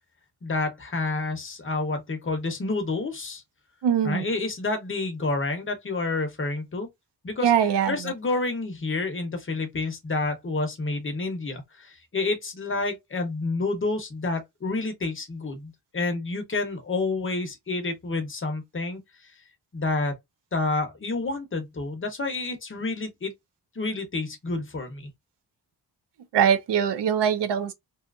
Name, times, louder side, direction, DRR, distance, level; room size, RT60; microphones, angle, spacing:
voice 1, 0.4-3.4 4.0-6.9 7.2-7.5 7.9-19.0 19.7-20.1 20.5-23.3 23.8-25.1, left 3 dB, 30° left, 0.7 m, -29 dB
voice 2, 3.8-4.3 7.4-8.1 26.3-27.7, right 8 dB, 75° right, 0.6 m, -22 dB
2.7 x 2.4 x 2.3 m
wide cardioid pair, 145°, 41 cm